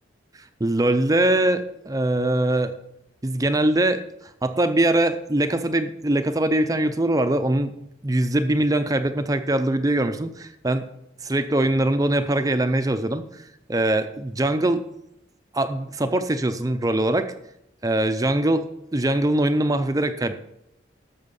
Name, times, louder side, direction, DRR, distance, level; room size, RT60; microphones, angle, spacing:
voice 1, 0.6-2.7 3.2-4.0 4.4-7.7 8.0-10.9 11.2-14.8 15.5-17.3 17.8-18.7 18.9-20.3, right 1 dB, 20° right, 9 dB, 0.5 m, -22 dB
12.5 x 7.2 x 5.3 m, 0.81 s
head